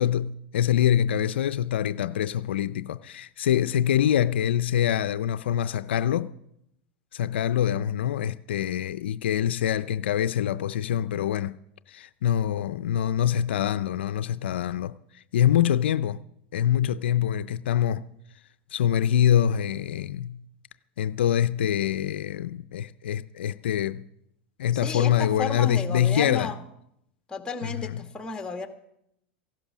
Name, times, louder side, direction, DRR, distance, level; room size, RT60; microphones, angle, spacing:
voice 1, 0.0-6.3 7.1-11.6 11.9-16.2 16.5-18.0 18.7-20.4 21.0-24.0 24.6-26.5 27.6-28.0, left 10 dB, 85° left, 0.5 m, -25 dB
voice 2, 24.7-26.6 27.3-28.7, left 4 dB, 15° left, 1.9 m, -33 dB
15.5 x 11.5 x 6.1 m
hypercardioid pair, 110°, 6 cm